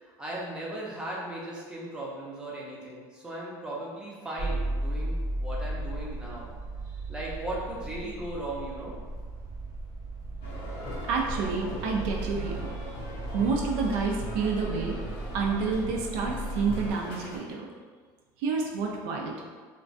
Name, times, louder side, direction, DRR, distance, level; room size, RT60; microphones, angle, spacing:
voice 1, 0.0-6.5 7.1-8.9, right 1 dB, 10° right, -5 dB, 0.6 m, -37 dB
sound 1, 4.4-16.9, right 2 dB, 35° right, 0.9 m, -36 dB
sound 2, 10.4-17.4, left 1 dB, 65° left, 0.7 m, -41 dB
voice 2, 11.1-12.7 13.3-15.0 15.3-17.7 18.4-19.3, right 4 dB, 75° right, 0 dB, 0.4 m, -29 dB
2.3 x 2.1 x 2.5 m, 1.5 s
supercardioid pair, 115°, 9 cm